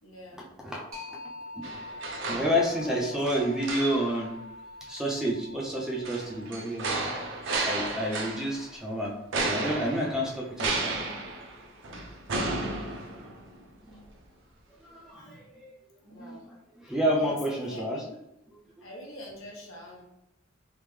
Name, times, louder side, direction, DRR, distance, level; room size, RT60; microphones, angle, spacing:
voice 1, 0.0-0.5 2.8-3.2 12.5-13.0 15.1-15.4 16.1-16.4 17.1-18.2 18.8-20.0, equal, 85° left, -2 dB, 1.0 m, -45 dB
voice 2, 0.6-1.2 1.5-1.7 2.0-4.4 4.9-7.0 7.3-9.1 9.4-11.0 13.1-13.3 13.8-14.0 14.8-15.7 16.1-16.4 16.8-18.0, equal, 5° right, -2 dB, 0.4 m, -30 dB
sound 1, 0.9-10.3, left 2 dB, 90° right, 1.1 m, -46 dB
sound 2, 1.6-3.0 3.3-4.2 6.1-8.7 9.3-13.6 14.0-14.1, right 2 dB, 65° right, 0.5 m, -33 dB
3.4 x 2.0 x 3.1 m, 0.82 s
head